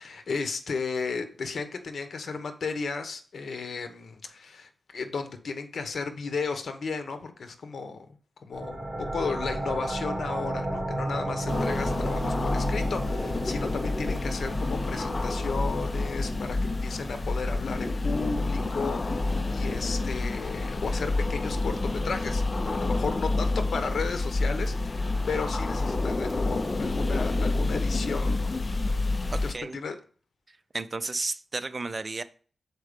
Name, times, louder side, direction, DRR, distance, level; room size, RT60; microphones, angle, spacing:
voice 1, 0.0-8.1 8.4-28.5 29.4-30.0, left 4 dB, 75° left, 8 dB, 1.0 m, -34 dB
sound 1, 8.5-19.9, right 1 dB, 15° right, 3.0 m, -35 dB
sound 2, 11.5-29.5, left 2 dB, 40° left, 0.7 m, -28 dB
voice 2, 29.3-29.8 30.5-32.2, right 3 dB, 40° right, 12 dB, 0.6 m, -33 dB
6.6 x 4.6 x 5.1 m, 0.42 s
cardioid pair, 70°, 0 cm